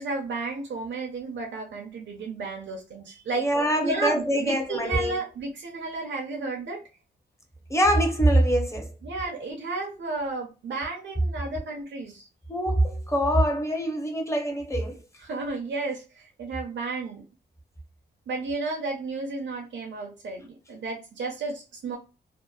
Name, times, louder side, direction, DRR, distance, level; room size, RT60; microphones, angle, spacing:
voice 1, 0.0-3.5 3.8-6.8 9.0-12.3 15.2-17.2 18.3-22.0, right 3 dB, 75° right, 0.7 m, -32 dB
voice 2, 3.4-5.2 7.7-8.9 12.5-15.0, right 1 dB, 15° left, 0.6 m, -24 dB
2.8 x 2.0 x 2.3 m
wide cardioid pair, 115°, 19 cm